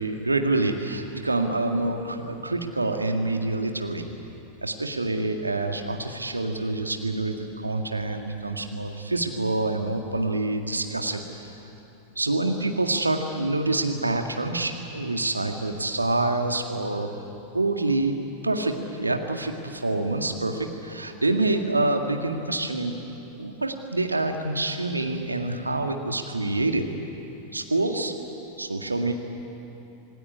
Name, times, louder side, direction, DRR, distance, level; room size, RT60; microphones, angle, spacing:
voice 1, 0.0-4.0 4.6-7.3 7.6-11.2 12.2-17.1 17.5-18.2 18.4-23.0 23.4-26.8 27.5-28.1 28.6-29.1, right 2 dB, 80° right, 4 dB, 2.0 m, -26 dB
26.5 x 18.5 x 9.9 m, 3.0 s
figure-of-eight pair, 90°, 0 cm